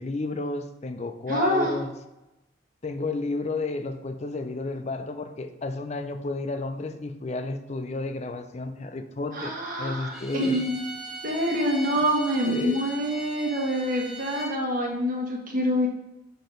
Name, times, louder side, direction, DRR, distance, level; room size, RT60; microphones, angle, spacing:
voice 1, 0.0-1.9 2.8-10.6 12.5-12.9, left 2 dB, 35° left, 9 dB, 0.5 m, -32 dB
voice 2, 1.3-1.7 9.3-10.7 11.2-15.9, equal, 50° right, 0 dB, 1.4 m, -26 dB
Bowed string instrument, 10.1-14.6, right 1 dB, 5° right, 1.7 m, -39 dB
6.5 x 4.1 x 5.1 m, 0.96 s
head